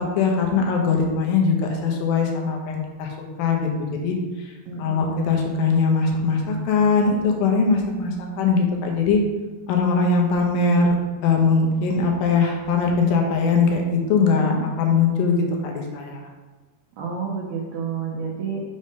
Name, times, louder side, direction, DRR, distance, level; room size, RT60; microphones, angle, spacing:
voice 1, 0.2-9.2 9.7-11.0 11.2-16.3, left 4 dB, 75° left, 1 dB, 2.5 m, -21 dB
voice 2, 4.6-5.2 14.1-14.6 17.0-18.6, right 5 dB, 85° right, -2 dB, 1.6 m, -30 dB
6.3 x 3.7 x 5.4 m, 1.3 s
omnidirectional pair, 4.3 m